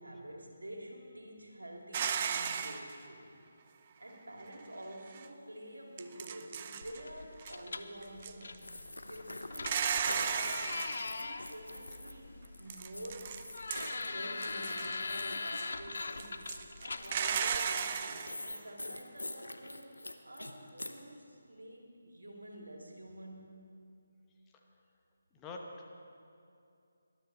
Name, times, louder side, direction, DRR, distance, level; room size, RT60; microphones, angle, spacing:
voice 1, 0.0-3.3 4.0-8.7 9.1-10.8 11.2-13.4 13.8-19.9 20.2-23.6, right 1 dB, 85° right, 0 dB, 2.7 m, -49 dB
sound 1, 1.9-3.0 5.1-5.3 6.0-7.0 7.4-7.6 8.0-8.6 9.6-11.1 12.7-14.1 14.4-15.0 15.5-15.7 16.2-18.3, right 7 dB, 30° right, 0.6 m, -35 dB
sound 2, 6.8-17.6, left 3 dB, 60° left, 0.8 m, -42 dB
sound 3, 8.6-12.1 12.4-21.0, left 2 dB, 80° left, 1.1 m, -45 dB
voice 2, 25.3-25.9, left 3 dB, 15° left, 0 dB, 1.1 m, -45 dB
19.5 x 12.5 x 4.1 m, 2.6 s
figure-of-eight pair, 150°, 0 cm